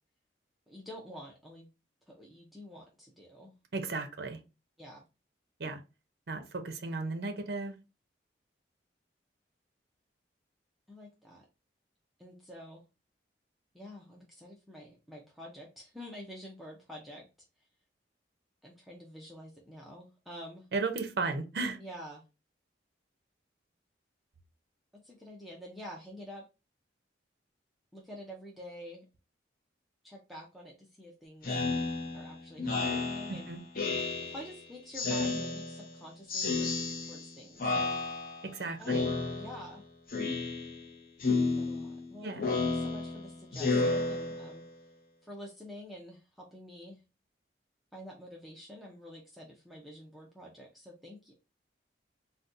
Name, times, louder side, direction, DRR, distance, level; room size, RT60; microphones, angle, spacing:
voice 1, 0.7-1.7 2.1-3.5 4.8-5.0 10.9-11.4 12.2-12.8 13.7-17.2 18.6-20.7 21.8-22.2 25.0-26.4 27.9-29.0 30.0-33.6 34.2-36.7 37.1-37.9 38.8-39.9 41.2-44.6 45.2-47.0 47.9-51.3, equal, ahead, 0.5 m, -48 dB
voice 2, 3.7-4.4 5.6-5.8 6.3-7.7 20.7-21.8 33.5-33.6 38.5-39.0 42.2-42.5, right 3 dB, 55° right, 0.6 m, -34 dB
Speech synthesizer, 31.4-34.6 34.9-36.0 36.3-37.3 37.6-38.5 38.9-39.8 40.1-40.9 41.2-44.7, left 3 dB, 50° left, 0.6 m, -32 dB
3.9 x 2.2 x 2.5 m
head